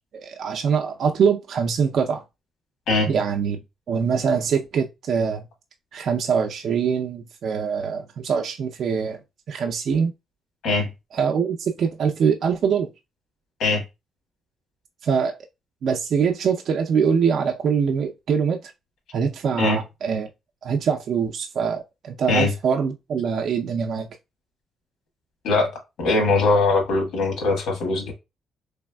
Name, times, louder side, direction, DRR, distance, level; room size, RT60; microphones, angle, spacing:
voice 1, 0.1-2.2 3.1-3.6 3.9-5.5 5.9-9.2 9.5-10.1 11.1-12.9 15.0-15.4 15.8-18.7 19.1-20.3 20.6-24.1, right 6 dB, 65° right, 0.4 m, -23 dB
voice 2, 26.0-28.1, left 3 dB, 85° left, 1.4 m, -21 dB
3.3 x 3.1 x 2.2 m
cardioid pair, 85°, 0 cm